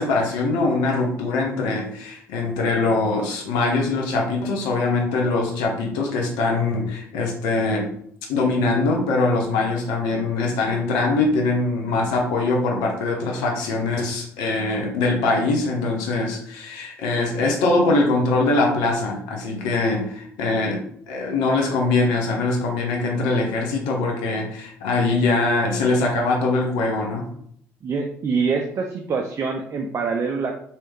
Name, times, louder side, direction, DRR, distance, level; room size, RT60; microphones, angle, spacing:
voice 1, 0.0-7.9 8.3-20.8 21.1-27.3, left 3 dB, 70° left, 0 dB, 0.7 m, -22 dB
voice 2, 27.8-30.6, right 5 dB, 40° right, 3 dB, 0.4 m, -25 dB
3.0 x 2.7 x 3.3 m, 0.65 s
hypercardioid pair, 55°, 8 cm